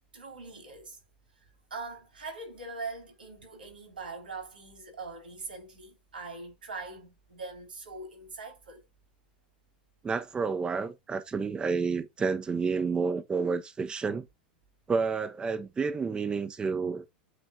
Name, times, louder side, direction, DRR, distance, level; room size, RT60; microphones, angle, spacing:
voice 1, 0.1-1.0 1.7-8.8, right 3 dB, 80° right, 3.5 m, -42 dB
voice 2, 10.0-14.3 14.9-17.0, right 5 dB, 20° right, 0.8 m, -30 dB
8.1 x 3.3 x 4.2 m
figure-of-eight pair, 90°, 5 cm